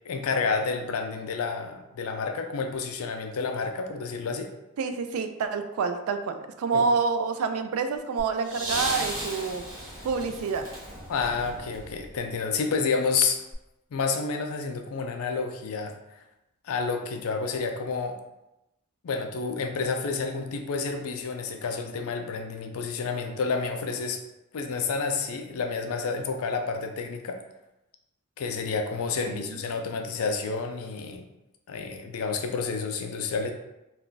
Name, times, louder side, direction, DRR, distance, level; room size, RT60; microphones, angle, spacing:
voice 1, 0.0-4.5 6.7-6.8 11.1-13.4 13.9-16.0 16.6-18.2 19.0-24.2 24.5-27.4 28.4-31.3 31.7-33.5, left 4 dB, 80° left, 5 dB, 0.4 m, -29 dB
voice 2, 4.8-9.6 10.0-10.7 29.3-29.6, right 5 dB, 85° right, 8 dB, 0.3 m, -28 dB
sound 1, 8.2-12.4 13.5-13.6, right 1 dB, 15° right, 1.1 m, -35 dB
2.3 x 2.3 x 3.8 m, 0.93 s
head